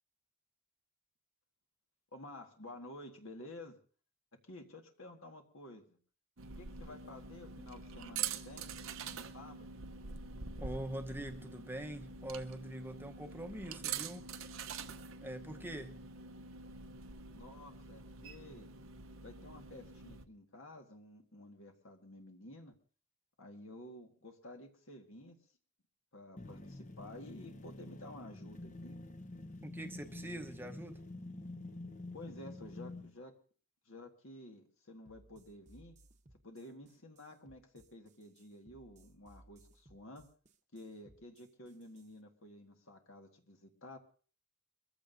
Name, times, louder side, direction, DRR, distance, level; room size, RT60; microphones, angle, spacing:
voice 1, 2.1-3.8 4.5-6.0 6.6-8.7 9.1-9.7 17.3-18.7 19.2-22.7 23.4-25.4 26.1-29.0 32.1-33.3 33.9-36.0 36.4-40.2 40.7-44.0, left 1 dB, 65° left, 3 dB, 1.7 m, -52 dB
sound 1, 6.4-20.3, right 6 dB, 65° right, 0.8 m, -45 dB
voice 2, 10.6-14.3 15.2-16.0 29.6-31.0, right 1 dB, 10° right, 5 dB, 0.9 m, -44 dB
sound 2, 26.4-33.1, left 2 dB, 35° left, 0.8 m, -48 dB
sound 3, 35.1-42.2, right 1 dB, 35° right, 1.0 m, -63 dB
23.5 x 15.0 x 2.7 m, 0.41 s
head